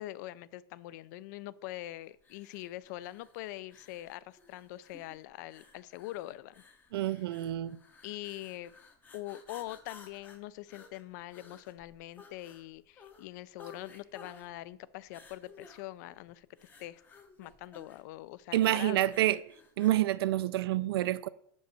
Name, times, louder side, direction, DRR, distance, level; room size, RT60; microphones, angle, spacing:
voice 1, 0.0-6.6 8.0-8.7 9.1-16.5 16.8-17.0 17.4-19.1, left 15 dB, 45° left, 0.4 m, -43 dB
sound 1, 2.2-20.1, left 4 dB, 15° left, 0.7 m, -56 dB
voice 2, 6.9-7.8 18.5-19.4 19.8-21.3, right 14 dB, 75° right, 0.5 m, -28 dB
6.0 x 5.3 x 6.7 m
supercardioid pair, 165°, 13 cm